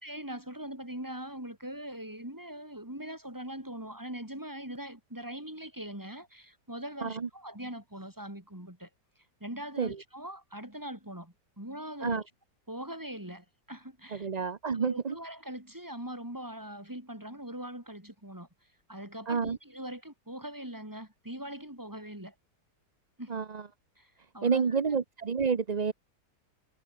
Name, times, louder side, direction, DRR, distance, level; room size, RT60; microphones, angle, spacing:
voice 1, 0.0-8.9 9.4-12.2 12.7-14.3 14.8-18.5 18.9-22.3 23.2-23.4 24.0-24.6, right 1 dB, 10° right, 4.9 m, -42 dB
voice 2, 14.1-15.2 19.3-19.6 23.3-23.6 24.4-25.9, right 5 dB, 35° right, 0.7 m, -29 dB
omnidirectional pair, 1.9 m